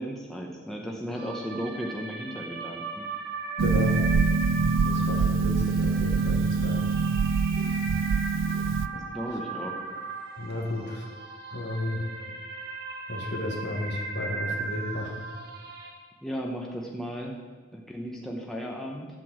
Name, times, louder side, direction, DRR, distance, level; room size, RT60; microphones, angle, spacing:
voice 1, 0.0-3.0 9.1-9.8 16.2-19.1, equal, ahead, -1 dB, 0.9 m, -35 dB
sound 1, 1.1-15.9, right 4 dB, 50° right, 2.1 m, -37 dB
voice 2, 3.6-4.0 4.8-6.9 7.6-7.7 10.4-11.0 11.5-12.0 13.1-15.2, left 1 dB, 55° left, 1 dB, 1.3 m, -33 dB
Harp, 3.6-8.9, right 4 dB, 70° right, 0.4 m, -24 dB
7.7 x 6.1 x 7.4 m, 1.4 s
head